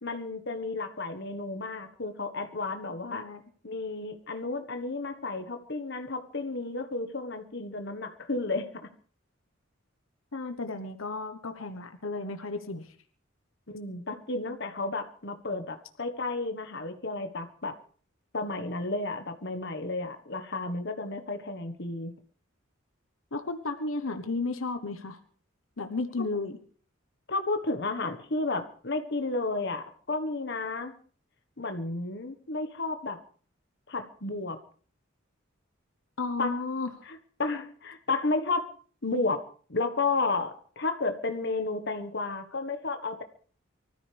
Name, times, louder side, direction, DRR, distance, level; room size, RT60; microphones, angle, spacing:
voice 1, 0.0-3.2 3.6-8.9 13.7-17.7 18.3-22.1 27.3-30.9 31.6-33.2 33.9-34.6 36.4-36.5 37.4-38.7 39.0-43.2, left 3 dB, 55° left, 7 dB, 1.5 m, -32 dB
voice 2, 10.3-13.0 23.3-25.2 25.8-26.6 36.2-36.9, left 3 dB, 80° left, 7 dB, 1.2 m, -33 dB
24.5 x 14.0 x 3.5 m, 0.43 s
head